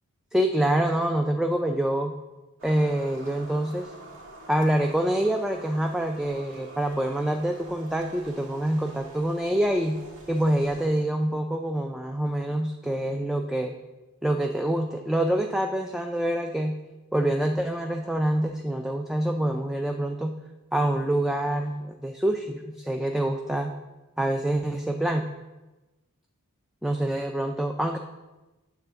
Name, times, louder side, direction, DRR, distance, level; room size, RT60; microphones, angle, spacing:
voice 1, 0.3-2.2 2.6-3.9 4.5-10.0 10.3-13.7 14.2-16.8 17.1-20.4 20.7-23.7 24.2-25.3 26.8-28.0, right 1 dB, ahead, 4 dB, 0.3 m, -26 dB
sound 1, 2.6-10.9, right 2 dB, 60° right, 1.7 m, -46 dB
9.1 x 3.6 x 7.0 m, 1.1 s
head